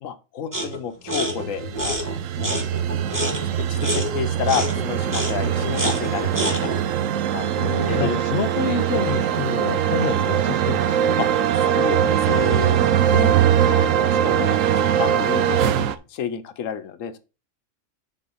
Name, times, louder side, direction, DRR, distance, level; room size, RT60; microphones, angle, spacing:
voice 1, 0.0-2.6 3.2-6.6 7.3-8.2 11.2-11.3 11.6-12.8 13.1-13.4 13.7-17.2, left 8 dB, 90° left, 1.1 m, -30 dB
sound 1, 0.5-0.8 1.1-6.8, equal, 15° right, 1.4 m, -28 dB
sound 2, 1.2-16.0, right 10 dB, 85° right, 1.0 m, -21 dB
voice 2, 7.5-11.0, left 6 dB, 55° left, 1.0 m, -28 dB
7.7 x 3.7 x 5.5 m
omnidirectional pair, 1.3 m